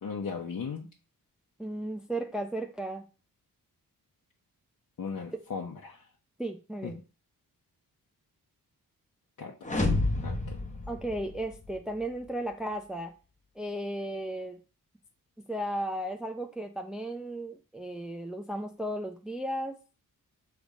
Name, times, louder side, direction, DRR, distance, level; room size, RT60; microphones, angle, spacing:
voice 1, 0.0-0.9 5.0-6.1 6.8-6.9 9.4-9.5 10.2-10.6, left 5 dB, 60° left, -1 dB, 1.0 m, -37 dB
voice 2, 1.6-3.0 6.4-7.0 10.9-13.1 13.6-14.6 15.5-19.8, right 1 dB, ahead, 3 dB, 0.5 m, -35 dB
sound 1, 9.6-11.8, left 2 dB, 20° left, 1.0 m, -30 dB
6.9 x 3.5 x 5.0 m, 0.34 s
wide cardioid pair, 135°, 35 cm